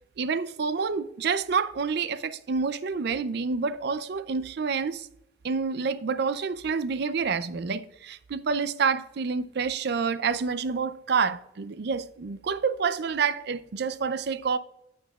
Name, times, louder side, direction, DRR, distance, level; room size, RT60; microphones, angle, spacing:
voice 1, 0.2-5.1 5.4-14.6, right 5 dB, 60° right, 0.4 m, -28 dB
15.0 x 5.6 x 2.3 m
head